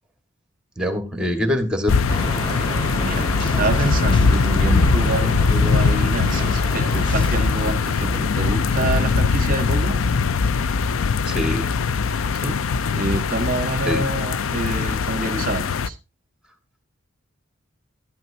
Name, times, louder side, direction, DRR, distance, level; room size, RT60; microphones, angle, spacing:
voice 1, 0.8-1.9 11.2-11.7 13.8-14.1, left 1 dB, 5° right, 1.6 m, -24 dB
sound 1, 1.9-15.9, left 5 dB, 85° left, 0.5 m, -21 dB
sound 2, 2.1-10.0, right 1 dB, 25° left, 2.4 m, -29 dB
voice 2, 3.0-10.0 12.3-12.6 12.9-16.0, right 2 dB, 40° right, 0.8 m, -27 dB
12.5 x 11.0 x 2.8 m
head